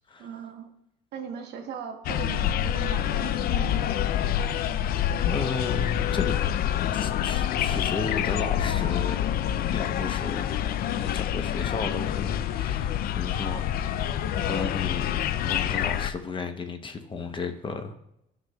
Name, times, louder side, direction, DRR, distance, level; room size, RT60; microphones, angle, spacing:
voice 1, 0.2-0.7 1.1-3.9, right 7 dB, 75° right, 5 dB, 1.1 m, -38 dB
sound 1, 2.0-16.1, left 10 dB, 60° left, 0.5 m, -27 dB
voice 2, 5.2-6.4 6.9-9.4 9.7-14.0 14.4-18.0, left 4 dB, 30° left, 7 dB, 0.8 m, -34 dB
13.5 x 5.9 x 2.3 m, 0.82 s
cardioid pair, 110°, 17 cm